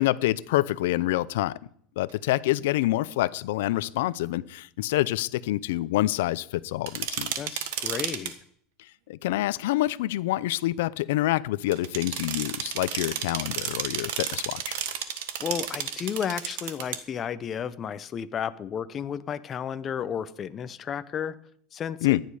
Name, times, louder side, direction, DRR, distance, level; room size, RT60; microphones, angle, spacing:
voice 1, 0.0-1.5 2.0-7.6 9.1-14.8 22.0-22.2, left 16 dB, 80° left, 19 dB, 0.6 m, -27 dB
sound 1, 6.9-8.3 11.7-17.0, right 9 dB, 80° right, 1.5 m, -32 dB
voice 2, 7.4-8.3 15.4-21.4 21.7-22.2, left 8 dB, 30° left, 13 dB, 0.8 m, -32 dB
15.0 x 10.5 x 4.9 m, 0.63 s
supercardioid pair, 130°, 0 cm